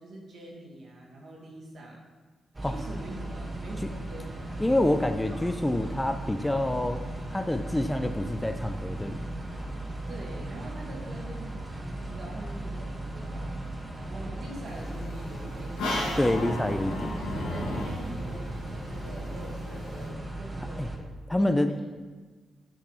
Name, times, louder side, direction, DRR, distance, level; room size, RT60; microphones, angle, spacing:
voice 1, 0.0-2.0 2.6-4.8 5.2-5.4 10.1-11.6 12.0-13.5 13.9-16.3 17.2-18.6 18.9-21.0 21.4-21.8, right 1 dB, 60° right, -3 dB, 1.8 m, -44 dB
sound 1, 2.5-21.0, right 1 dB, 25° right, 1.2 m, -37 dB
voice 2, 4.6-7.0 7.3-9.3 16.2-17.1 20.8-20.9 21.3-21.7, left 1 dB, 15° left, 8 dB, 0.4 m, -27 dB
sound 2, 14.6-20.1, left 1 dB, 80° left, 1.1 m, -35 dB
6.7 x 5.8 x 3.2 m, 1.4 s
hypercardioid pair, 45°, 0 cm